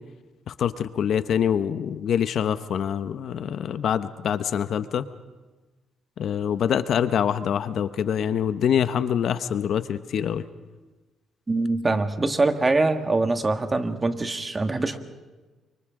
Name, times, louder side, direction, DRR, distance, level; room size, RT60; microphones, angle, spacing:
voice 1, 0.5-5.1 6.2-10.4, left 8 dB, 65° left, 12 dB, 0.8 m, -25 dB
voice 2, 11.5-15.0, right 2 dB, 25° right, 7 dB, 1.6 m, -23 dB
29.0 x 24.5 x 3.7 m, 1.2 s
cardioid pair, 90°, 0 cm